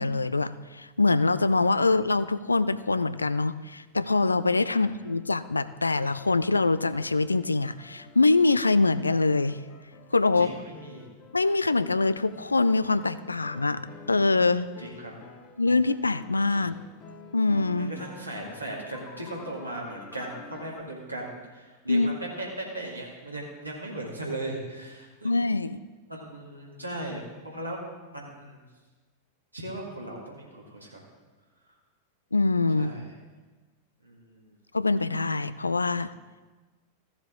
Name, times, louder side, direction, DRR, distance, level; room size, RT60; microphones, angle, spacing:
voice 1, 0.0-9.6 10.1-10.5 11.3-13.8 14.1-14.7 15.6-16.7 17.3-17.9 21.9-22.1 25.2-25.8 32.3-33.0 34.7-36.1, left 3 dB, 80° left, 15 dB, 0.3 m, -24 dB
sound 1, 4.6-20.8, left 5 dB, 30° left, 1.0 m, -50 dB
voice 2, 10.4-11.1 14.8-15.1 16.5-16.6 17.7-25.5 26.1-27.8 28.1-28.6 29.5-31.0 32.7-33.1 34.0-34.4, right 1 dB, 85° right, -3 dB, 2.1 m, -38 dB
15.0 x 7.2 x 3.7 m, 1.3 s
figure-of-eight pair, 90°, 0 cm